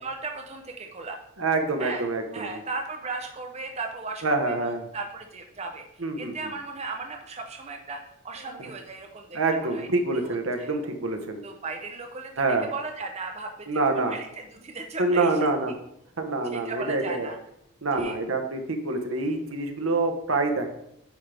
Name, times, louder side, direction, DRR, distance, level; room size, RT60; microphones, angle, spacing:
voice 1, 0.0-1.2 1.8-2.0 2.3-8.0 8.2-9.9 10.1-10.7 11.4-12.3 12.6-15.5 16.5-17.4 17.9-18.2, right 3 dB, 30° right, 3 dB, 0.7 m, -36 dB
voice 2, 1.4-2.5 4.2-4.9 6.0-6.5 8.6-8.7 9.3-11.4 12.4-12.7 13.7-14.2 15.0-15.7 16.2-17.3 17.8-20.7, right 3 dB, 75° right, 5 dB, 1.2 m, -26 dB
9.5 x 5.6 x 3.4 m, 0.76 s
head